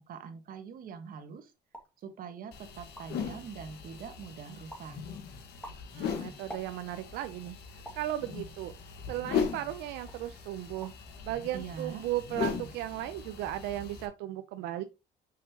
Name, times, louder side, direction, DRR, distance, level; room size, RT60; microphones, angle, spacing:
voice 1, 0.0-1.5 2.0-5.0 11.5-12.0, right 6 dB, 55° right, 1.4 m, -43 dB
sound 1, 1.7-2.0 2.5-2.6 2.8-3.3 3.8-4.3 4.7-5.0 5.4-7.1 7.8-8.1 8.8-9.7 10.1-10.3 10.6-11.1 11.3-11.8, equal, 5° left, 2.0 m, -49 dB
sound 2, 2.5-14.1, left 6 dB, 75° left, 1.6 m, -38 dB
voice 2, 5.9-7.6 8.0-8.7 9.1-10.9 11.2-14.8, right 14 dB, 90° right, 0.6 m, -36 dB
6.5 x 5.4 x 2.9 m
cardioid pair, 110°, 17 cm